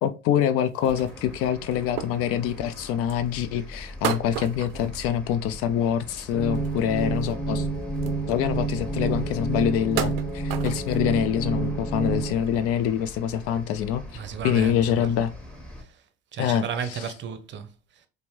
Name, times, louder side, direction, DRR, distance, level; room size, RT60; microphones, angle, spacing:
voice 1, 0.0-7.7 8.3-15.3 16.4-16.6 16.9-17.0, left 9 dB, 50° left, 0.4 m, -25 dB
sound 1, 0.7-3.3 4.0-5.7 6.0-7.3 7.6-7.7 7.9-8.6 9.1-9.2 9.8-11.1 11.6-11.7 12.0-12.5 12.9-13.0 13.3-13.5 14.4-14.5, right 11 dB, 75° right, 0.5 m, -35 dB
sound 2, 0.8-15.8, left 1 dB, 5° left, 1.5 m, -42 dB
sound 3, 6.3-12.3, right 3 dB, 25° left, 1.6 m, -28 dB
voice 2, 14.1-15.1 15.8-16.0 16.3-18.1, right 7 dB, 40° right, 0.7 m, -34 dB
4.9 x 2.1 x 3.2 m
hypercardioid pair, 65°, 30 cm